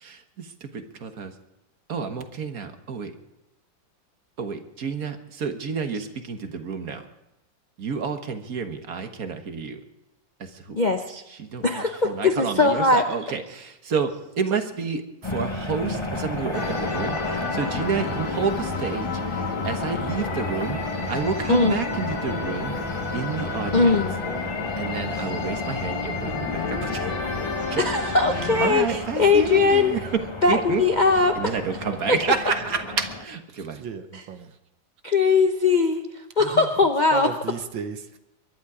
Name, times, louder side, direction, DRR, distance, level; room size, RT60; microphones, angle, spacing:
voice 1, 0.0-1.3 1.9-3.1 4.4-7.0 7.8-9.8 10.5-10.8 11.4-14.1 14.4-20.8 21.1-22.7 23.1-24.0 24.8-27.1 27.7-27.8 28.6-30.0 30.5-30.8 31.3-33.8, right 5 dB, 50° right, 1.7 m, -29 dB
voice 2, 10.8-11.2 11.6-13.0 21.5-21.9 23.7-24.2 25.2-25.3 27.8-29.9 30.4-31.6 32.1-32.2 34.1-34.2 35.0-36.1 36.4-37.3, left 3 dB, 40° left, 0.6 m, -20 dB
sound 1, 15.2-33.2, left 2 dB, 15° left, 1.2 m, -32 dB
sound 2, 16.5-28.8, left 4 dB, 90° left, 2.3 m, -32 dB
voice 3, 33.6-34.5 36.4-36.7 37.1-38.2, right 7 dB, 85° right, 1.9 m, -34 dB
23.0 x 11.5 x 4.9 m
omnidirectional pair, 2.1 m